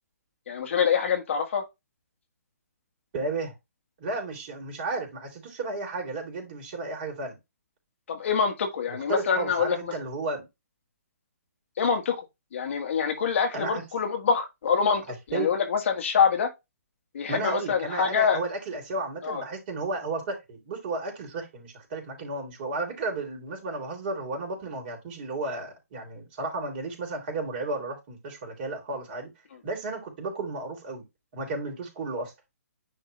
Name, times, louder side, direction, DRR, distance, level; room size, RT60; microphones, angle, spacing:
voice 1, 0.5-1.6 8.1-9.8 11.8-12.3 12.5-15.0 15.3-16.5 17.1-18.4 19.2-19.4, left 6 dB, 50° left, 1.8 m, -25 dB
voice 2, 3.1-3.5 4.0-7.4 8.9-10.5 13.5-13.8 15.1-15.5 17.3-29.3 29.6-31.0 31.3-32.3, right 3 dB, 40° right, 3.5 m, -33 dB
9.7 x 3.6 x 3.3 m
figure-of-eight pair, 135°, 9 cm